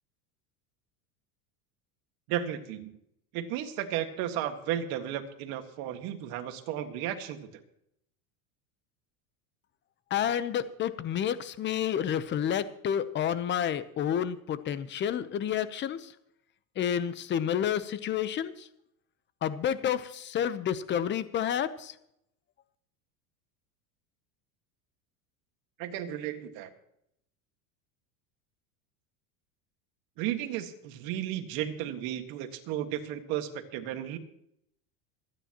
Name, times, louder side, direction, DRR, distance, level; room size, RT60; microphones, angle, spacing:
voice 1, 2.3-2.9 3.3-7.6 25.8-26.7 30.2-34.2, right 11 dB, 55° right, 6 dB, 1.8 m, -34 dB
voice 2, 10.1-16.0 16.8-18.5 19.4-21.9, left 9 dB, 25° left, 13 dB, 0.8 m, -30 dB
27.0 x 9.9 x 3.0 m, 0.75 s
supercardioid pair, 140°, 41 cm